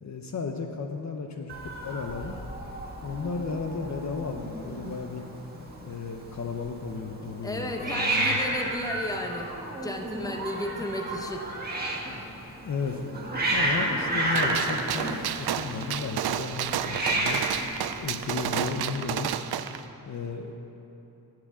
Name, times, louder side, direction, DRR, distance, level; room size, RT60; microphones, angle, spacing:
voice 1, 0.0-1.6 1.8-2.4 3.0-5.2 5.8-8.4 10.7-10.9 12.6-13.0 13.5-17.4 18.0-19.4 20.0-20.5, left 5 dB, 45° left, 4 dB, 0.8 m, -34 dB
Hiss, 1.5-18.8, right 1 dB, 25° right, 1.7 m, -32 dB
voice 2, 7.4-11.5, left 1 dB, 10° left, 3 dB, 1.0 m, -34 dB
Gunshot gunfire, 14.4-19.8, right 10 dB, 75° right, 0.5 m, -31 dB
10.5 x 7.8 x 7.4 m, 3.0 s
wide cardioid pair, 115°, 38 cm